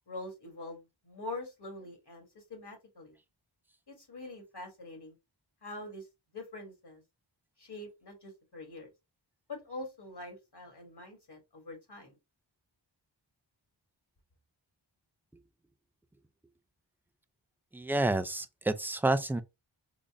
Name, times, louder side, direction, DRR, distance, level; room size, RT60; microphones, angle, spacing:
voice 1, 0.1-3.2 3.9-5.1 5.6-6.1 6.3-7.0 7.6-8.9 9.5-12.2, left 2 dB, 55° left, 1.6 m, -44 dB
voice 2, 17.7-19.4, right 2 dB, 5° right, 0.3 m, -29 dB
3.9 x 2.1 x 3.5 m
wide cardioid pair, 45°, 47 cm